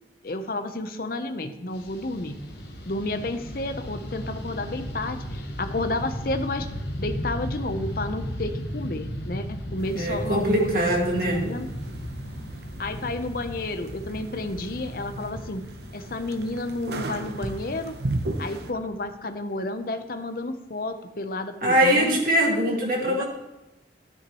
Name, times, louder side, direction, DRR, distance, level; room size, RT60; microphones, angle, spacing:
voice 1, 0.2-2.4 2.9-6.7 7.0-10.7 11.0-11.7 12.8-15.6 15.9-17.9 18.4-22.2 23.0-23.2, left 2 dB, 55° left, 8 dB, 0.8 m, -31 dB
Fixed-wing aircraft airplane, 1.7-19.1, equal, 80° left, 1.5 m, -36 dB
sound 1, 9.8-18.7, right 2 dB, 70° right, 0.9 m, -37 dB
voice 2, 10.0-11.4 21.6-23.2, equal, 50° right, -1 dB, 2.1 m, -22 dB
12.0 x 9.9 x 3.1 m, 0.97 s
head